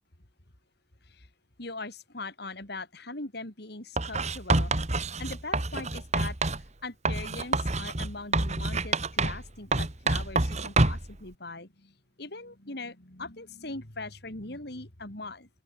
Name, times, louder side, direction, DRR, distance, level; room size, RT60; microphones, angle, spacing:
voice 1, 1.6-4.7 5.2-6.4 6.8-15.5, left 2 dB, 55° left, 3.7 m, -40 dB
Writing, 4.0-6.6 7.0-9.5 9.7-11.1, right 2 dB, 35° right, 2.1 m, -27 dB
open air
head